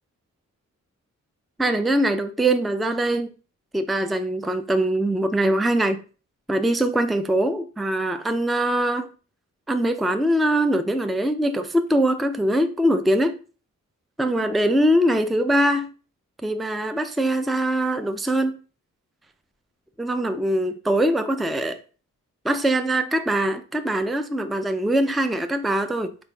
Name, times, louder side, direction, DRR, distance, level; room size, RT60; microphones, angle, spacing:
voice 1, 1.6-3.3 3.7-6.0 6.5-9.1 9.7-13.4 14.2-15.9 16.4-18.5 20.0-21.8 22.4-26.1, right 1 dB, ahead, 0.4 m, -22 dB
4.0 x 3.8 x 2.3 m
cardioid pair, 55°, 33 cm